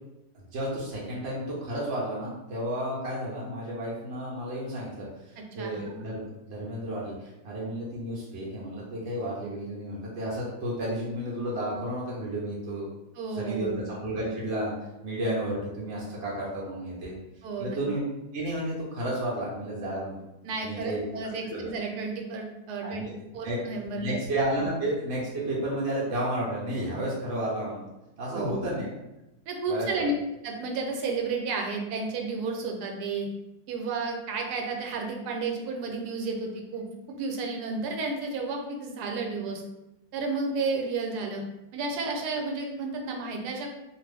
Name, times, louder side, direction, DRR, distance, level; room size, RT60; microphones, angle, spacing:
voice 1, 0.5-12.9 13.3-14.7 15.0-17.1 17.6-18.0 18.3-20.2 20.6-21.1 21.5-21.7 22.8-23.2 23.4-23.6 24.0-27.8 28.2-28.9 29.7-30.0, right 1 dB, 60° right, -5 dB, 0.8 m, -32 dB
voice 2, 5.6-6.0 13.2-13.8 17.4-17.8 20.4-23.1 23.3-24.2 24.6-24.7 28.3-28.7 29.5-30.1 30.4-33.3 33.7-39.6 40.1-41.4 41.7-43.7, right 3 dB, 80° right, 1 dB, 1.1 m, -32 dB
2.5 x 2.4 x 3.3 m, 0.93 s
omnidirectional pair, 1.7 m